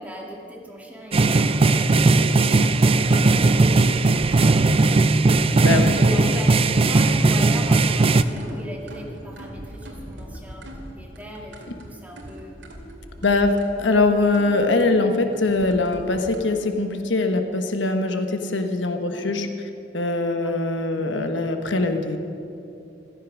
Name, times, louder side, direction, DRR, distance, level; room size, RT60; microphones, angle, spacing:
voice 1, 0.0-10.7 11.0-12.6 13.2-13.6 19.1-19.3 20.4-20.6, equal, 10° right, -1 dB, 2.2 m, -38 dB
sound 1, 1.1-8.2, right 3 dB, 30° right, 0.5 m, -18 dB
voice 2, 5.5-5.9 11.7-11.8 13.2-19.5 19.9-22.2, left 3 dB, 80° left, 6 dB, 1.2 m, -22 dB
sound 2, 6.2-16.5, right 1 dB, 75° right, 2.4 m, -41 dB
15.5 x 14.0 x 6.1 m, 2.7 s
head